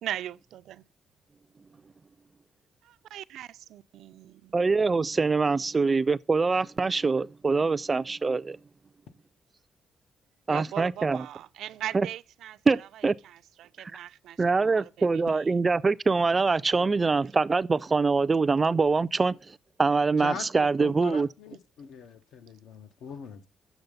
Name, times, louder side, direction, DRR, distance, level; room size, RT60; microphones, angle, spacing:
voice 1, 0.0-0.8 2.8-4.5 10.5-15.4, right 12 dB, 85° right, 0.4 m, -40 dB
voice 2, 4.5-8.6 10.5-11.3 11.9-12.1 12.7-13.1 13.8-13.9 14.4-21.3, right 4 dB, 25° right, 0.3 m, -24 dB
voice 3, 20.2-23.5, left 6 dB, 85° left, 1.1 m, -41 dB
8.0 x 6.3 x 5.2 m
cardioid pair, 145°, 0 cm